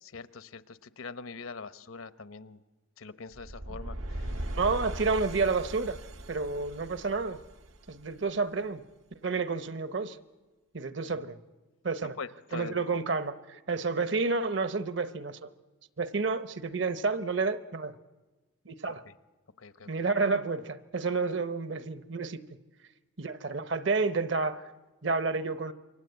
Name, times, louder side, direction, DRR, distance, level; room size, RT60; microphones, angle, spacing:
voice 1, 0.0-2.6 3.0-4.6 11.0-11.1 12.0-12.8 18.9-19.1 19.6-19.9, left 4 dB, 80° left, 13 dB, 0.9 m, -43 dB
sound 1, 3.3-8.4, right 1 dB, 80° right, 1.4 m, -39 dB
voice 2, 4.6-6.0 6.3-7.4 7.9-8.8 9.1-10.2 10.7-11.4 11.8-12.1 12.5-15.5 16.0-17.9 18.6-19.0 19.9-22.4 23.2-24.7 25.0-25.7, right 4 dB, 60° right, 12 dB, 0.9 m, -30 dB
27.5 x 23.5 x 8.0 m, 1.2 s
head